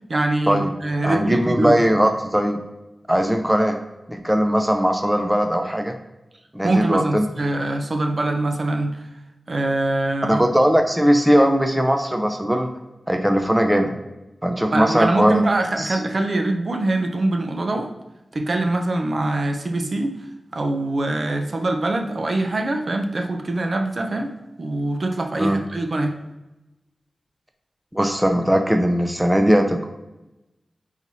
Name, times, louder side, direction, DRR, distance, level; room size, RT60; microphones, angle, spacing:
voice 1, 0.1-1.8 6.6-9.1 9.5-10.4 14.7-17.9 18.3-20.2 20.5-24.3 24.6-26.2, right 2 dB, 50° right, 4 dB, 0.5 m, -23 dB
voice 2, 1.0-2.6 3.1-3.8 4.1-6.0 6.5-7.3 10.3-12.7 13.1-13.9 14.4-15.5 15.8-16.0 25.4-25.6 27.9-29.9, equal, 5° right, 5 dB, 0.5 m, -19 dB
4.0 x 3.0 x 4.1 m, 0.99 s
wide cardioid pair, 80°, 0 cm